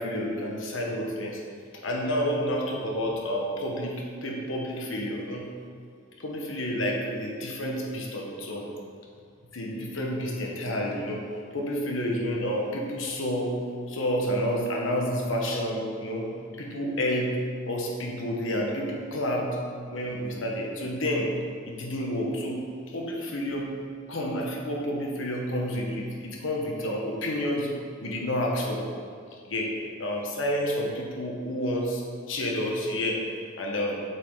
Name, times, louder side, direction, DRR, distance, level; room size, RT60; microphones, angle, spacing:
voice 1, 0.0-1.4 1.8-5.5 6.2-8.7 9.5-11.2 11.5-13.6 13.9-16.3 16.6-17.4 17.7-19.6 19.9-21.3 21.7-22.6 22.9-23.7 24.1-27.7 28.0-28.8 29.4-33.2 33.6-34.0, equal, 85° left, -1 dB, 1.2 m, -29 dB
7.6 x 5.8 x 3.8 m, 2.1 s
head